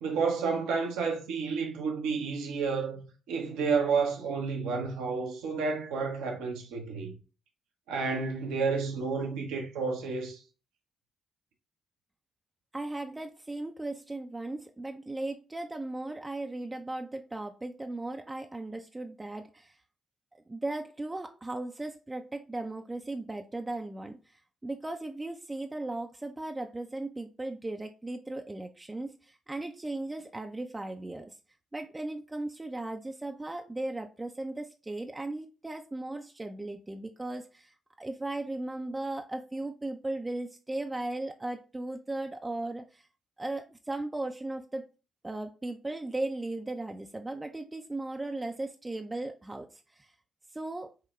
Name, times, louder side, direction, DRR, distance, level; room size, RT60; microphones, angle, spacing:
voice 1, 0.0-7.1 7.9-10.4, right 5 dB, 75° right, 0.8 m, -30 dB
voice 2, 12.7-19.7 20.5-24.2 24.6-31.3 31.7-37.7 38.0-43.0 43.4-44.8 45.2-49.7 50.0-50.1 50.5-50.9, right 2 dB, 20° right, 0.5 m, -37 dB
5.9 x 2.2 x 3.1 m
hypercardioid pair, 45°, 0 cm